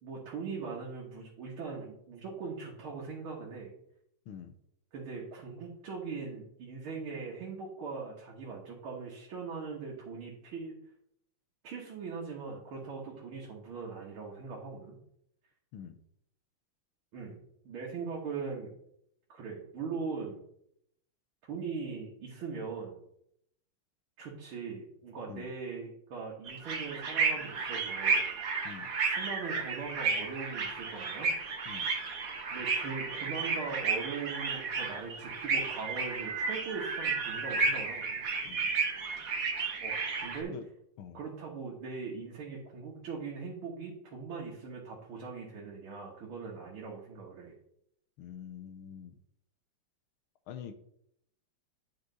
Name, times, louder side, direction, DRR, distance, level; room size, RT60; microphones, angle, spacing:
voice 1, 0.0-3.7 4.9-10.7 11.6-15.0 17.1-17.4 17.7-18.7 19.3-20.4 21.5-23.0 24.2-28.3 29.0-31.3 32.5-38.2 39.8-40.5 41.1-47.5, right 5 dB, 70° right, -3 dB, 2.1 m, -40 dB
sound 1, 26.5-40.4, right 4 dB, 50° right, 1.2 m, -32 dB
voice 2, 48.2-49.1 50.5-50.7, left 8 dB, 75° left, 8 dB, 1.5 m, -45 dB
9.7 x 5.1 x 3.9 m, 0.73 s
omnidirectional pair, 2.4 m